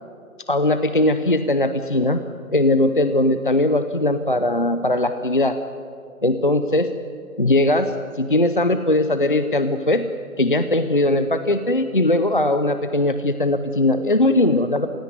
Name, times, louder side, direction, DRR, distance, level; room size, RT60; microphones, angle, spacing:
voice 1, 0.5-2.2 2.5-5.6 6.2-6.9 7.4-10.1 10.4-14.9, left 1 dB, 35° left, 9 dB, 0.7 m, -19 dB
27.0 x 16.5 x 9.5 m, 2.4 s
hypercardioid pair, 175°, 43 cm